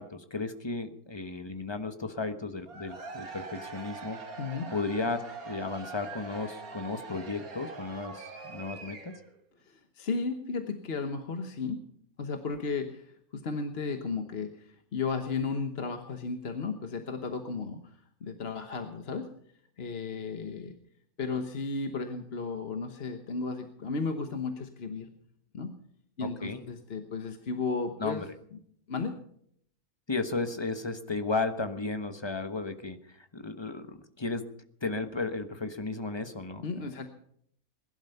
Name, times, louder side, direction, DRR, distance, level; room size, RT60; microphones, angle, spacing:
voice 1, 0.0-4.2 4.7-9.1 26.2-26.6 28.0-28.3 30.1-34.5 34.8-36.9, left 3 dB, 20° left, 8 dB, 1.1 m, -34 dB
Cheering / Crowd, 2.6-9.4, right 4 dB, 80° right, 2.2 m, -43 dB
voice 2, 4.4-4.7 9.7-11.8 12.2-17.8 18.2-19.3 19.8-20.7 21.2-25.1 25.5-25.7 26.2-28.3 28.5-28.6 28.9-29.1 36.6-37.1, left 4 dB, 45° left, 6 dB, 1.3 m, -34 dB
21.0 x 11.5 x 5.7 m, 0.67 s
omnidirectional pair, 1.5 m